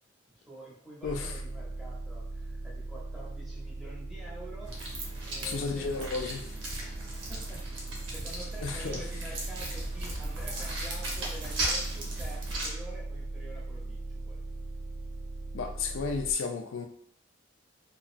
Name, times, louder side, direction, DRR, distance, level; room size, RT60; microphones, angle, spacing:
voice 1, 0.3-6.2 6.8-14.4, right 1 dB, ahead, -6 dB, 0.7 m, -48 dB
voice 2, 1.0-1.4 5.4-6.4 8.6-9.0 15.5-16.9, left 4 dB, 80° left, 4 dB, 0.4 m, -33 dB
sound 1, 1.0-16.3, right 2 dB, 50° right, 0.3 m, -39 dB
sound 2, 4.6-12.7, right 1 dB, 75° right, 0.8 m, -37 dB
2.9 x 2.4 x 2.4 m, 0.65 s
head